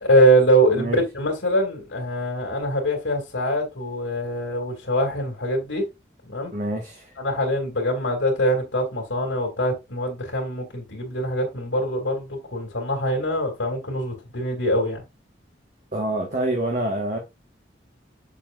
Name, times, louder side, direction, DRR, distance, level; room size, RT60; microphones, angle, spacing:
voice 1, 0.0-5.8 6.2-6.5 7.2-15.0, right 1 dB, 85° left, 2.8 m, -23 dB
voice 2, 0.7-1.0 6.5-7.1 15.9-17.2, right 1 dB, 45° right, 1.5 m, -26 dB
7.3 x 6.6 x 2.5 m
head